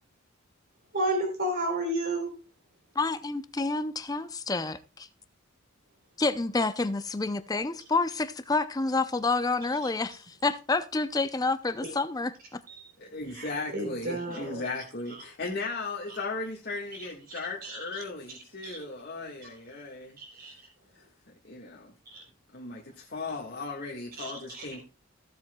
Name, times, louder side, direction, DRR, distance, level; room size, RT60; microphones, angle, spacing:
voice 1, 0.9-2.3 13.4-13.5 13.7-14.6 17.6-17.8 18.6-18.7 20.4-20.5 22.1-22.2 24.2-24.4, right 1 dB, 45° right, 3.5 m, -30 dB
voice 2, 3.0-5.1 6.2-12.6, left 3 dB, 20° left, 0.5 m, -29 dB
voice 3, 13.0-20.2 20.9-21.0 21.4-21.9 22.5-24.8, left 3 dB, 50° left, 1.6 m, -37 dB
15.5 x 7.8 x 2.3 m
head